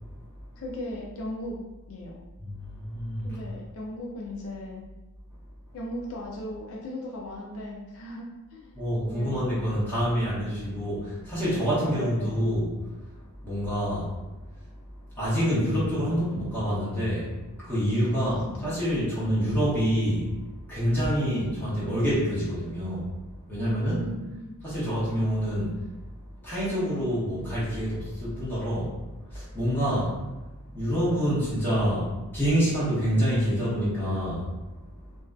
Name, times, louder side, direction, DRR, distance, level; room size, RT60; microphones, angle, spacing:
voice 1, 0.6-1.6 1.9-2.2 3.2-4.8 5.7-8.3 8.5-8.8 9.1-9.5 11.8-12.3 18.1-18.8 23.9-24.6, left 1 dB, 65° left, -2 dB, 0.4 m, -37 dB
voice 2, 2.4-3.3 8.7-12.7 13.4-14.1 15.2-17.3 17.6-20.3 20.7-23.1 23.5-24.0 24.6-25.7 26.4-28.9 29.3-30.1 30.7-34.5, equal, 10° left, -11 dB, 1.0 m, -27 dB
2.5 x 2.2 x 2.2 m, 1.1 s
head